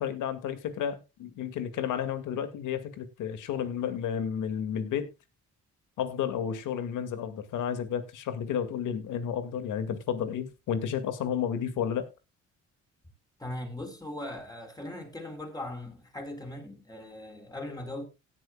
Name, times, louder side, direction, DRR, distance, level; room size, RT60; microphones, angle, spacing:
voice 1, 0.0-5.1 6.0-12.1, left 8 dB, 85° left, 2.2 m, -32 dB
voice 2, 13.4-18.0, left 1 dB, 10° left, 4.5 m, -39 dB
17.5 x 9.4 x 2.3 m
cardioid pair, 90°, 30 cm